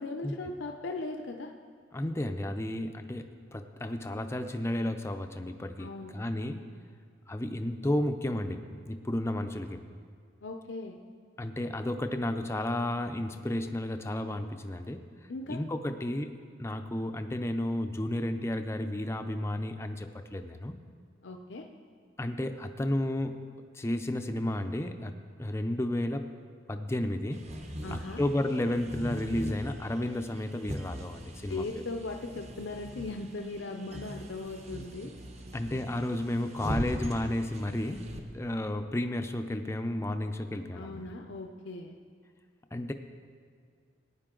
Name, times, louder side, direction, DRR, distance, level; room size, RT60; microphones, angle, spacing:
voice 1, 0.0-1.5 5.8-6.1 10.4-11.0 15.3-15.6 21.2-21.7 27.8-28.2 31.5-35.1 40.7-41.9, left 3 dB, 75° left, 4 dB, 0.6 m, -38 dB
voice 2, 1.9-6.7 7.3-9.8 11.4-15.0 15.5-16.3 16.6-20.7 22.2-23.4 23.7-25.1 25.4-26.3 26.7-27.5 27.9-31.8 35.5-38.1 38.3-41.0 42.7-42.9, left 1 dB, 15° left, 6 dB, 0.5 m, -32 dB
sound 1, 27.3-38.2, equal, 35° right, 1.0 m, -41 dB
17.5 x 9.6 x 3.8 m, 2.1 s
head